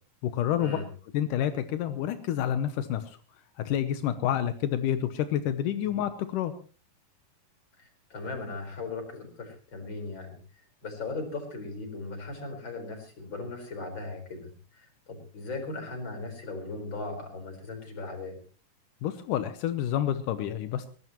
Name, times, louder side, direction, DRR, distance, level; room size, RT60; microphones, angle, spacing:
voice 1, 0.2-0.8 1.1-3.2 3.7-6.5 19.0-20.9, left 10 dB, 85° left, 10 dB, 2.5 m, -28 dB
voice 2, 7.8-10.4 10.8-18.4, left 3 dB, 35° left, 4 dB, 5.2 m, -38 dB
22.0 x 18.5 x 3.0 m, 0.37 s
omnidirectional pair, 3.6 m